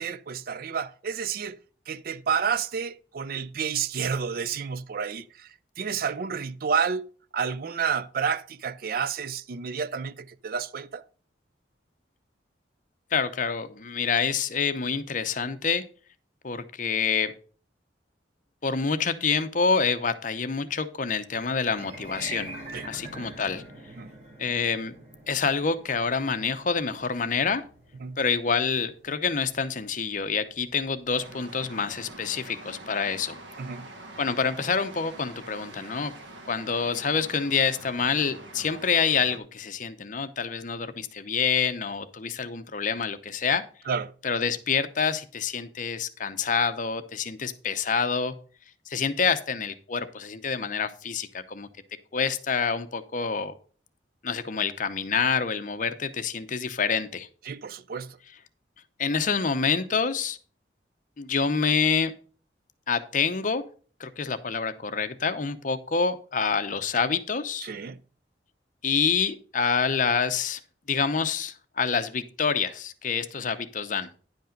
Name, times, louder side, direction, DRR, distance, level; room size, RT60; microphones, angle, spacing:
voice 1, 0.0-1.6 1.9-5.5 5.8-7.0 7.3-11.0 22.7-22.9 24.0-24.1 28.0-28.2 33.6-33.9 43.9-44.1 57.5-58.2 67.6-68.0, right 6 dB, 50° right, 0.4 m, -30 dB
voice 2, 13.1-15.8 16.4-17.3 18.6-22.6 22.8-23.6 24.4-25.0 25.3-27.6 28.2-33.4 34.2-36.1 36.5-43.6 44.2-48.3 48.9-51.7 52.1-53.5 54.2-57.3 59.0-60.4 61.2-62.1 62.9-63.6 64.0-67.7 68.8-70.6 70.9-74.1, left 5 dB, 45° left, 0.7 m, -27 dB
sound 1, 21.8-32.0, right 1 dB, 35° right, 4.8 m, -44 dB
sound 2, 31.2-39.4, right 2 dB, 85° right, 1.3 m, -45 dB
10.0 x 5.3 x 5.2 m
head